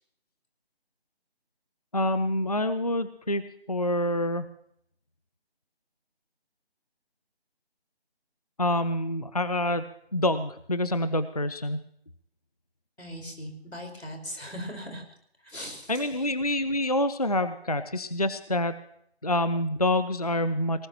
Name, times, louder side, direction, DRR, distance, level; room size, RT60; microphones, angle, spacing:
voice 1, 1.9-4.5 8.6-9.8 10.1-11.8 15.9-18.8 19.2-20.9, left 1 dB, 40° left, 12 dB, 0.5 m, -27 dB
voice 2, 13.0-15.0 15.4-16.3, equal, 90° left, 3 dB, 4.8 m, -39 dB
19.5 x 18.5 x 2.9 m, 0.67 s
figure-of-eight pair, 160°, 32 cm